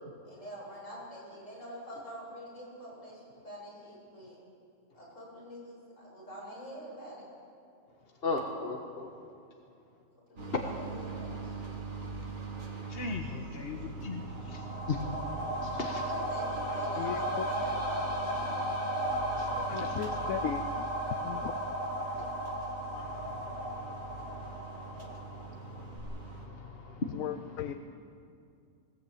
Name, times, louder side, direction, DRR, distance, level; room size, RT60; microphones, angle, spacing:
voice 1, 0.2-4.4 4.9-7.2 10.3-11.7 15.9-18.5, equal, 70° left, -5 dB, 8.3 m, -45 dB
voice 2, 8.2-9.1 12.9-15.0 15.3-16.0 19.4-20.0 22.2-22.3 22.9-27.2, left 3 dB, 45° left, 1 dB, 1.6 m, -39 dB
sound 1, 10.4-26.5, right 4 dB, 85° right, 2.7 m, -43 dB
sound 2, 14.2-25.6 26.0-26.1, equal, 30° right, 4.4 m, -35 dB
voice 3, 17.0-17.5 19.6-20.6 21.2-21.6 27.1-27.8, left 10 dB, 85° left, 10 dB, 1.1 m, -36 dB
20.5 x 18.5 x 8.7 m, 2.4 s
omnidirectional pair, 1.4 m